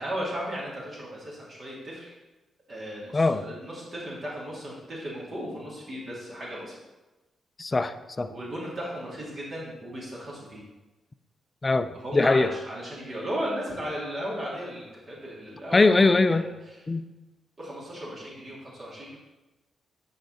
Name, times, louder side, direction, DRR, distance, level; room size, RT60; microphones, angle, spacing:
voice 1, 0.0-2.1 2.7-6.8 8.3-10.6 11.9-16.8 17.6-19.2, equal, 50° right, -5 dB, 2.5 m, -36 dB
voice 2, 3.1-3.4 7.6-8.3 11.6-12.5 15.7-16.4 16.9-17.0, left 3 dB, 30° left, 11 dB, 0.5 m, -21 dB
9.4 x 4.0 x 3.9 m, 1.1 s
supercardioid pair, 45°, 0 cm